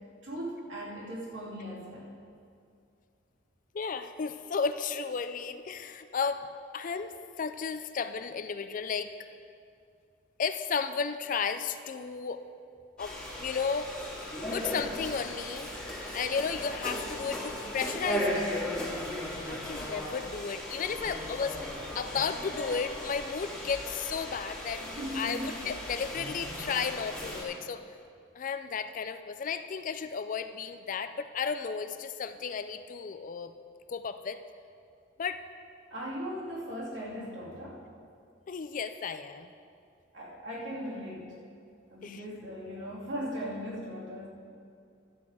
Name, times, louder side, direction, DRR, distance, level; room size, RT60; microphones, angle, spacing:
voice 1, 0.2-2.1 24.8-25.7 35.9-37.8 40.1-41.4 41.9-44.3, equal, 65° right, -5 dB, 2.7 m, -38 dB
voice 2, 3.7-6.5 6.7-7.1 7.4-9.1 10.4-12.4 13.0-13.9 14.5-15.7 16.1-18.5 19.5-24.8 25.1-27.8 28.4-33.5 33.9-34.4 35.2-35.4 38.5-39.5 42.0-42.2, left 5 dB, 40° left, 10 dB, 0.4 m, -33 dB
sound 1, 13.0-27.4, left 1 dB, 5° left, 2.0 m, -37 dB
12.0 x 8.4 x 4.8 m, 2.4 s
head